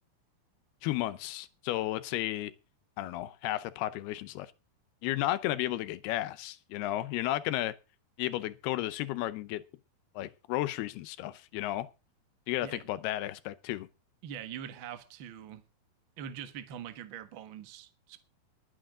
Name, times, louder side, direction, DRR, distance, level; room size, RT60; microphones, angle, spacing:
voice 1, 0.8-2.5 3.0-4.5 5.0-7.7 8.2-9.6 10.2-11.9 12.5-13.9, left 15 dB, 85° left, 2.8 m, -33 dB
voice 2, 14.2-15.6 16.2-18.2, right 9 dB, 65° right, 1.2 m, -43 dB
21.5 x 9.2 x 3.7 m
omnidirectional pair, 4.5 m